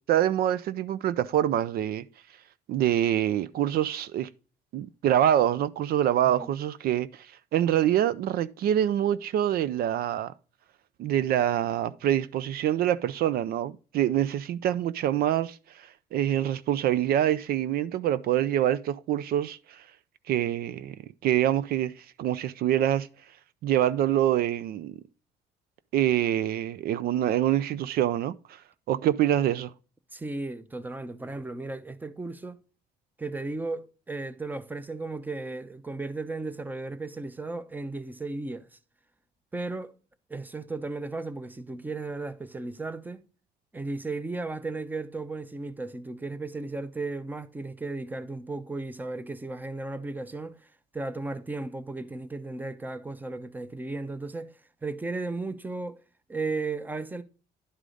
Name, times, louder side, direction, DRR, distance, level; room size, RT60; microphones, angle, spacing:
voice 1, 0.1-2.0 2.7-4.3 4.7-10.3 11.0-19.8 20.3-21.0 21.2-23.1 23.6-25.0 25.9-28.6 28.9-29.7, right 11 dB, 65° right, 0.5 m, -25 dB
voice 2, 30.1-32.6 33.2-38.7 39.5-39.9 40.3-43.2 43.7-50.6 50.9-56.0 56.3-57.2, right 3 dB, 10° right, 0.8 m, -35 dB
11.0 x 4.9 x 3.8 m
cardioid pair, 110°, 17 cm